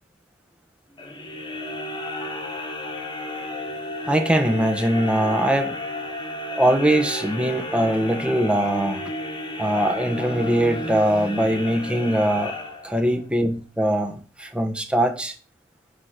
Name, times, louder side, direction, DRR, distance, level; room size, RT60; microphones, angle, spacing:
sound 1, 0.9-13.2, left 2 dB, 25° left, 1.6 m, -33 dB
voice 1, 4.1-5.8 6.6-9.0 9.6-12.5 12.8-15.3, right 1 dB, 5° right, 1.2 m, -21 dB
10.5 x 4.0 x 6.6 m
head